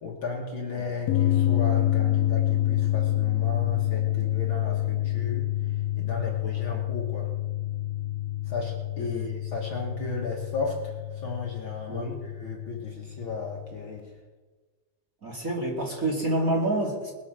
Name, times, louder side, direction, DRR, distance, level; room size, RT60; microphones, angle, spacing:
voice 1, 0.0-7.3 8.5-14.1, left 3 dB, 50° left, 0 dB, 2.1 m, -35 dB
sound 1, 1.1-14.0, left 14 dB, 70° left, 1.8 m, -28 dB
voice 2, 9.0-9.3 11.9-12.2 15.2-17.1, right 1 dB, 30° right, -1 dB, 2.8 m, -28 dB
20.5 x 8.3 x 6.8 m, 1.4 s
omnidirectional pair, 3.4 m